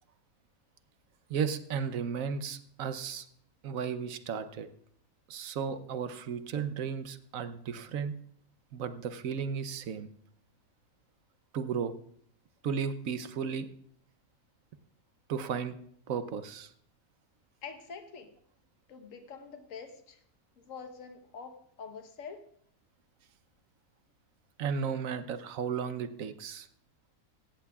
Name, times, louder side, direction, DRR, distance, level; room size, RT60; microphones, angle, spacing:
voice 1, 1.3-3.3 3.6-4.7 5.3-8.1 8.7-10.1 11.5-11.9 12.6-13.7 15.3-15.7 16.1-16.7 24.6-26.7, right 6 dB, 65° right, 11 dB, 1.1 m, -34 dB
voice 2, 17.6-18.4 18.9-20.2 20.6-22.4, left 5 dB, 60° left, 7 dB, 1.5 m, -45 dB
17.0 x 14.0 x 2.4 m, 0.64 s
omnidirectional pair, 1.6 m